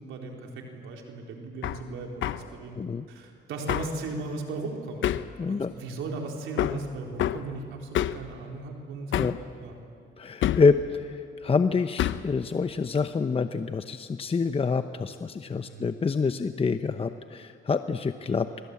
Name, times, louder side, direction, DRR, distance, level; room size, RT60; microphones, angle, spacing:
voice 1, 0.0-2.8 3.1-5.2 5.5-9.1 9.6-9.7 15.7-15.9, right 3 dB, 85° right, 1 dB, 4.2 m, -37 dB
Hammer, 1.6-1.8 2.2-2.5 3.7-4.0 5.0-5.3 6.6-6.8 7.2-7.4 7.9-8.3 9.1-9.4 10.4-10.7 12.0-12.3, left 12 dB, 75° left, 0.9 m, -27 dB
voice 2, 2.7-3.0 5.4-5.7 9.1-9.4 10.2-18.5, left 4 dB, 30° left, 9 dB, 0.9 m, -27 dB
27.5 x 23.5 x 8.5 m, 2.4 s
cardioid pair, 90°, 20 cm